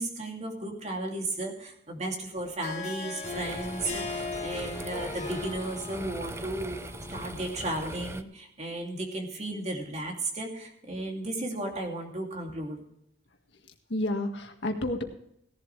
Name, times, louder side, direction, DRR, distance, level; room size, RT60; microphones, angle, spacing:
voice 1, 0.0-12.8, right 1 dB, 40° right, 2 dB, 2.6 m, -34 dB
Harp, 2.4-7.9, left 4 dB, 40° left, 2.3 m, -39 dB
sound 1, 3.2-8.2, right 2 dB, 15° right, 0.6 m, -41 dB
voice 2, 13.5-15.0, left 1 dB, 70° left, 4 dB, 1.8 m, -31 dB
17.0 x 11.5 x 3.3 m, 0.75 s
head